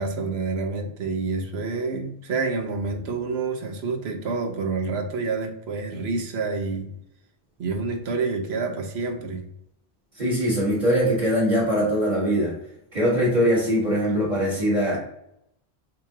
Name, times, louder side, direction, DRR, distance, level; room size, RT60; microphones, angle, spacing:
voice 1, 0.0-6.9 7.6-9.4, right 4 dB, 90° right, 5 dB, 1.1 m, -28 dB
voice 2, 10.2-12.5 12.9-15.0, equal, 45° right, -5 dB, 1.6 m, -22 dB
6.6 x 2.7 x 2.8 m, 0.77 s
omnidirectional pair, 1.0 m